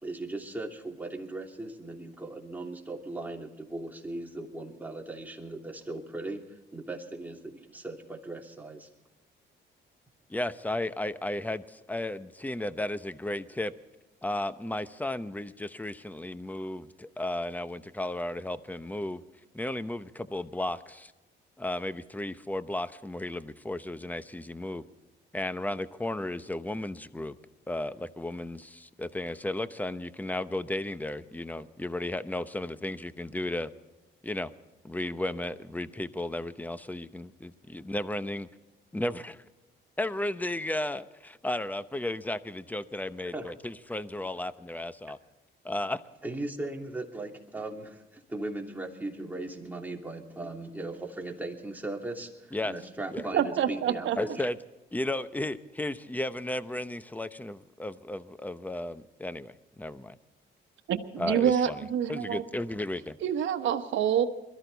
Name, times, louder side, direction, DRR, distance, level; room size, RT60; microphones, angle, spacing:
voice 1, 0.0-6.4 6.7-8.9 43.3-43.5 46.2-54.4, right 2 dB, 10° right, 0 dB, 2.9 m, -38 dB
voice 2, 10.3-13.7 14.2-19.2 19.5-21.1 21.6-24.8 25.3-27.4 27.7-33.7 34.2-34.5 34.8-38.5 38.9-39.4 40.0-45.2 45.6-46.0 52.5-52.7 53.1-53.3 54.2-54.6 54.9-60.2 61.2-61.8 62.1-63.2, left 1 dB, 10° left, 13 dB, 0.9 m, -34 dB
voice 3, 53.3-54.2 60.9-62.4 63.2-64.2, right 9 dB, 75° right, 5 dB, 1.2 m, -27 dB
22.5 x 13.5 x 4.1 m, 1.1 s
cardioid pair, 90°, 20 cm